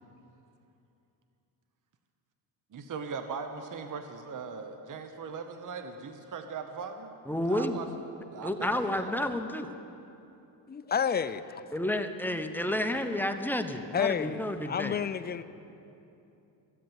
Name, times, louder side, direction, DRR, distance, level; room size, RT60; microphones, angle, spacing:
voice 1, 2.7-7.1 7.5-7.9 8.3-9.1, right 5 dB, 40° right, 7 dB, 1.0 m, -39 dB
voice 2, 7.3-7.8 8.4-9.7 11.7-15.0, left 1 dB, 5° left, 6 dB, 0.9 m, -30 dB
voice 3, 10.7-11.4 13.9-15.4, left 7 dB, 20° left, 13 dB, 0.5 m, -30 dB
14.5 x 7.7 x 8.8 m, 2.8 s
supercardioid pair, 70°, 50 cm